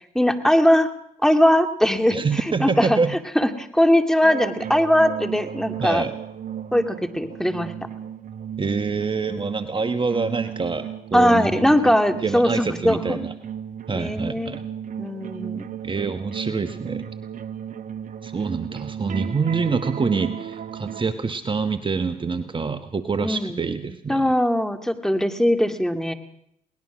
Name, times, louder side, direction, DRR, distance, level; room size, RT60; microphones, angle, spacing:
voice 1, 0.1-0.9 1.2-3.0 3.4-6.1 6.7-7.7 11.1-13.2 13.9-14.6 15.0-15.8 23.2-23.6 24.1-26.1, equal, 5° left, 7 dB, 2.4 m, -20 dB
voice 2, 2.1-3.2 5.8-6.1 8.6-11.9 12.2-13.3 13.9-14.6 15.8-17.1 18.2-24.3, right 4 dB, 30° right, 9 dB, 1.4 m, -26 dB
sound 1, 4.2-21.1, right 8 dB, 55° right, 1.2 m, -35 dB
21.5 x 19.0 x 6.3 m, 0.72 s
supercardioid pair, 60°, 16 cm